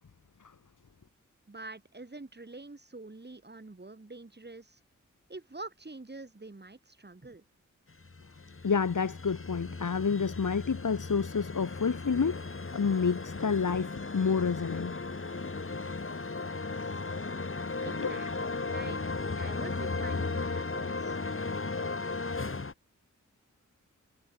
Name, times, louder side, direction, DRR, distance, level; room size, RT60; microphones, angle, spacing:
voice 1, 1.5-4.8 5.3-7.4 17.8-19.0 19.4-21.2, right 2 dB, 35° right, 7.8 m, -46 dB
sound 1, 8.0-22.7, left 3 dB, 45° left, 4.0 m, -36 dB
voice 2, 8.6-12.4 12.7-15.0 15.9-16.0 18.0-18.1, left 5 dB, 75° left, 3.8 m, -29 dB
wide cardioid pair, 65°, 31 cm